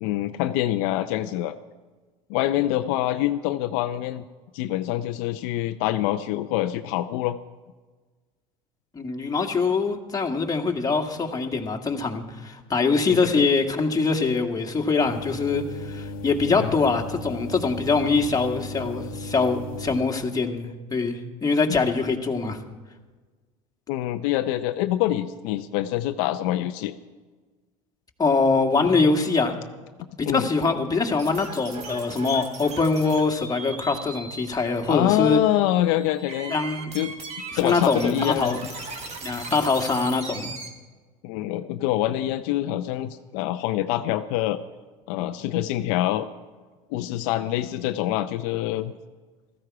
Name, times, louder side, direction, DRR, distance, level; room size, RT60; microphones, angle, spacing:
voice 1, 0.0-1.6 2.3-4.2 4.5-7.4 13.1-13.5 16.5-16.7 23.9-26.9 30.2-30.5 34.9-36.5 36.9-37.1 37.6-38.6 41.2-44.6 45.1-46.3 46.9-48.9, left 14 dB, 70° left, 9 dB, 0.6 m, -25 dB
voice 2, 8.9-22.6 28.2-29.5 30.2-35.4 36.5-36.9 37.5-38.6 39.2-40.5, left 4 dB, 20° left, 3 dB, 1.8 m, -23 dB
sound 1, 15.0-20.0, left 2 dB, 90° left, 1.0 m, -36 dB
sound 2, 31.2-40.7, right 3 dB, 45° right, 2.9 m, -39 dB
15.5 x 14.5 x 4.8 m, 1.3 s
hypercardioid pair, 85°, 17 cm